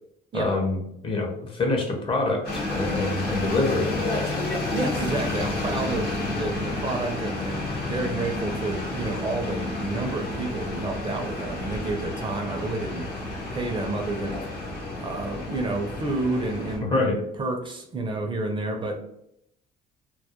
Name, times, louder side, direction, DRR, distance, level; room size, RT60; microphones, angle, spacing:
voice 1, 0.3-0.8 1.0-4.3 16.8-17.2, left 3 dB, 30° left, 2 dB, 0.6 m, -26 dB
sound 1, 2.4-16.8, left 2 dB, 65° left, 0.9 m, -31 dB
voice 2, 4.7-13.1 13.5-14.4 15.0-19.0, right 2 dB, 30° right, 3 dB, 0.4 m, -30 dB
2.2 x 2.0 x 2.8 m, 0.75 s
cardioid pair, 110°, 17 cm